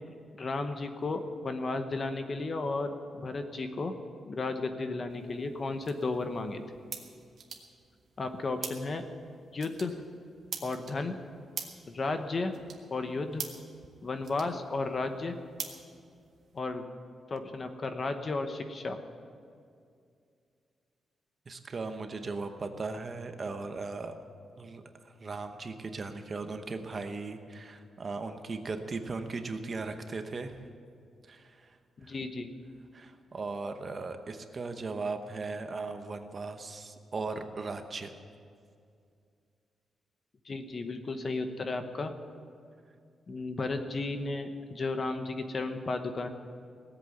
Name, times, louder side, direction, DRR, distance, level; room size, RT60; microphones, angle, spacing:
voice 1, 0.3-3.9 4.3-6.6 8.2-9.0 9.5-9.9 10.6-11.2 11.9-12.5 12.9-13.4 14.0-15.4 16.5-16.8 17.3-19.0 32.0-32.5 40.4-42.1 43.3-46.3, left 3 dB, 35° left, 7 dB, 1.0 m, -33 dB
sound 1, 5.1-16.6, right 6 dB, 50° right, 1.6 m, -46 dB
voice 2, 21.5-24.1 24.6-30.6 31.3-31.8 32.0-32.1 32.9-38.1, right 3 dB, 30° right, 7 dB, 0.9 m, -38 dB
18.0 x 8.1 x 9.3 m, 2.3 s
wide cardioid pair, 170°, 0 cm